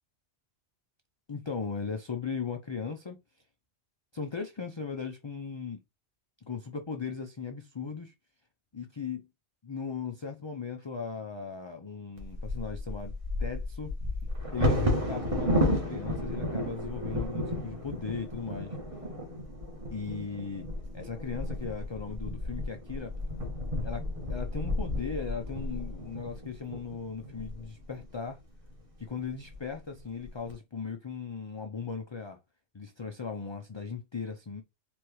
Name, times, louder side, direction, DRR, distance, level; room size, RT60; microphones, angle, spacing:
voice 1, 1.3-3.2 4.1-5.8 6.5-8.1 8.7-9.3 9.6-13.1 13.4-13.9 14.5-18.8 19.9-20.7 20.9-23.1 23.8-28.4 29.0-32.4 32.7-34.6, left 5 dB, 35° left, 0.5 m, -37 dB
Bird vocalization bird call bird song / Wind / Thunder, 12.2-28.1 28.7-28.8 29.1-29.5 30.0-30.5, left 1 dB, 30° right, 1.6 m, -33 dB
4.7 x 3.5 x 3.1 m
omnidirectional pair, 1.1 m